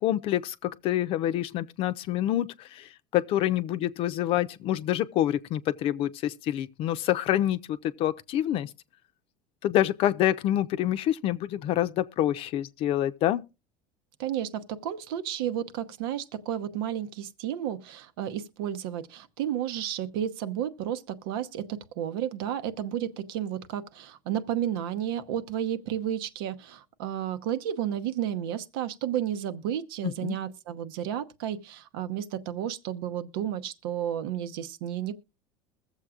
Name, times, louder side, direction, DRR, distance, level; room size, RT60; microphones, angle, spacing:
voice 1, 0.0-8.7 9.6-13.4 30.2-30.4, left 12 dB, 50° left, 0.7 m, -27 dB
voice 2, 14.2-35.1, right 10 dB, 80° right, 0.9 m, -32 dB
21.5 x 7.3 x 2.4 m
supercardioid pair, 120°, 12 cm